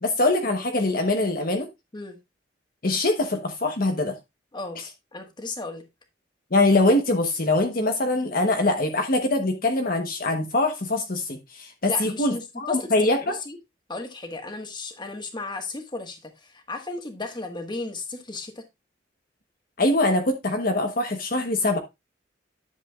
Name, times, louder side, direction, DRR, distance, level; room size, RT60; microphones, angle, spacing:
voice 1, 0.0-1.7 2.8-4.2 6.5-13.4 19.8-21.8, left 2 dB, 50° left, 1.1 m, -23 dB
voice 2, 5.1-5.8 11.9-13.6 13.9-18.6, left 3 dB, 25° left, 1.5 m, -34 dB
10.5 x 7.6 x 2.4 m
head